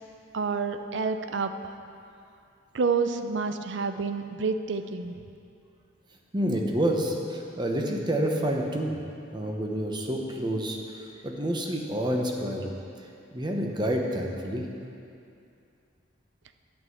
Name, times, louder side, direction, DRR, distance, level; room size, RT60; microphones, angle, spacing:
voice 1, 0.3-1.5 2.7-5.1, right 4 dB, 65° right, 8 dB, 0.5 m, -28 dB
voice 2, 6.3-8.9 9.3-12.8 13.3-14.7, equal, 20° right, 1 dB, 0.8 m, -28 dB
8.7 x 5.6 x 7.9 m, 2.6 s
head